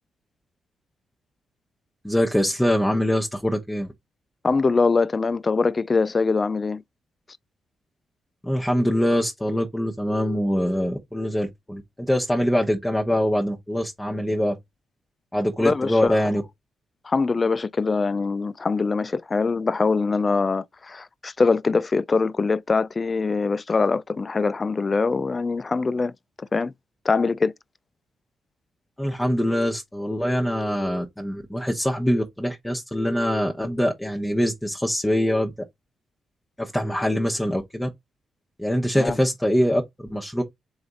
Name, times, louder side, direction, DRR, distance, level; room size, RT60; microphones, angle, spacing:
voice 1, 2.0-3.9 8.4-14.6 15.3-16.4 29.0-35.5 36.6-37.9 38.6-40.4, equal, 10° left, 0.9 m, -23 dB
voice 2, 4.4-6.8 15.6-16.1 17.0-26.1 26.4-26.7 27.0-27.5 38.9-39.2, left 4 dB, 35° left, 0.4 m, -23 dB
3.9 x 3.3 x 3.9 m
supercardioid pair, 60°, 0 cm